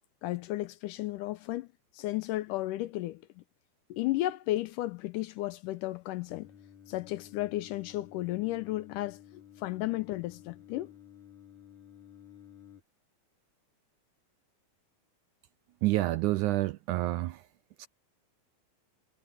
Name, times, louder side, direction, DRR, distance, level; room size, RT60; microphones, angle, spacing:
voice 1, 0.2-1.7 1.9-3.4 3.9-6.5 6.9-10.9, left 16 dB, 80° left, 2.0 m, -34 dB
Singing, 6.3-12.8, left 10 dB, 60° left, 5.8 m, -53 dB
voice 2, 15.8-17.4 17.8-17.9, right 16 dB, 80° right, 1.8 m, -28 dB
omnidirectional pair, 4.1 m